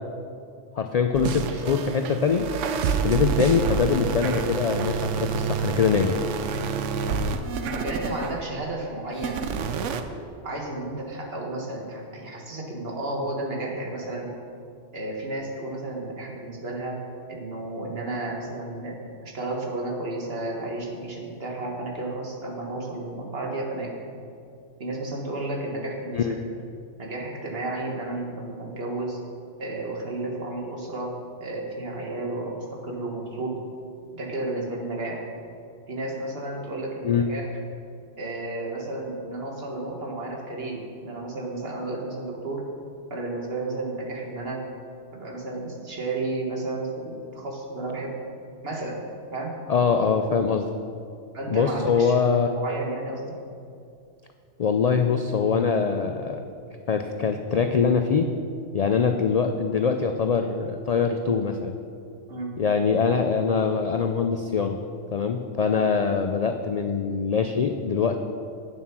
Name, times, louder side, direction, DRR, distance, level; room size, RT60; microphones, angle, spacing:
voice 1, 0.7-2.5 3.0-6.2 26.1-26.4 37.0-37.3 49.7-50.7 51.5-52.5 54.6-56.4 56.9-58.3 58.7-61.7 62.6-64.8 65.1-68.2, left 5 dB, 70° left, 6 dB, 0.3 m, -23 dB
sound 1, 1.1-8.6 9.1-10.0, right 6 dB, 80° right, 1.0 m, -28 dB
voice 2, 7.6-9.4 10.4-14.3 14.9-17.0 17.3-19.0 19.2-23.9 24.8-26.3 27.0-29.2 29.6-31.2 31.4-33.6 34.1-35.2 35.9-37.5 38.2-42.7 43.1-44.6 45.1-48.2 48.6-49.0 49.3-49.5 51.3-52.2 52.5-53.3 62.3-62.5, right 2 dB, 55° right, 0 dB, 1.7 m, -32 dB
9.0 x 7.3 x 6.0 m, 2.4 s
omnidirectional pair, 1.3 m